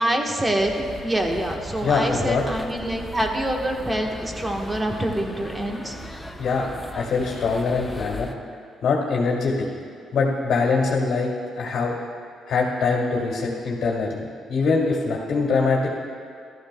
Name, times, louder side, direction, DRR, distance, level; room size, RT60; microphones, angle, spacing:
voice 1, 0.0-5.9, right 1 dB, 15° right, 2 dB, 1.3 m, -25 dB
sound 1, 0.6-8.3, equal, 10° left, 0.6 m, -38 dB
voice 2, 1.8-2.4 6.4-6.7 6.9-8.3 8.8-9.5 10.1-12.0 12.5-15.9, left 4 dB, 65° left, -2 dB, 1.8 m, -23 dB
14.5 x 13.0 x 2.3 m, 2.3 s
cardioid pair, 90°, 0 cm